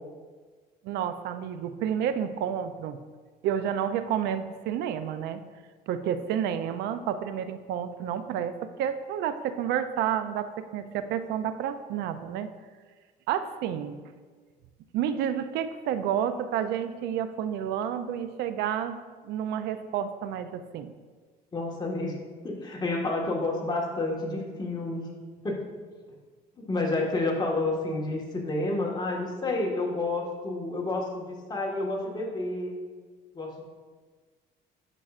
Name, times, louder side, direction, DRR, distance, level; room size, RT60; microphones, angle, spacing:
voice 1, 0.8-3.0 3.4-5.4 5.9-12.5 13.3-14.0 14.9-19.0 19.2-20.9, right 9 dB, 80° right, 11 dB, 0.4 m, -30 dB
voice 2, 21.5-22.2 22.4-25.1 25.4-25.6 26.6-32.8 33.3-33.6, left 2 dB, 25° left, -2 dB, 1.5 m, -30 dB
9.8 x 6.2 x 2.4 m, 1.5 s
cardioid pair, 110°, 17 cm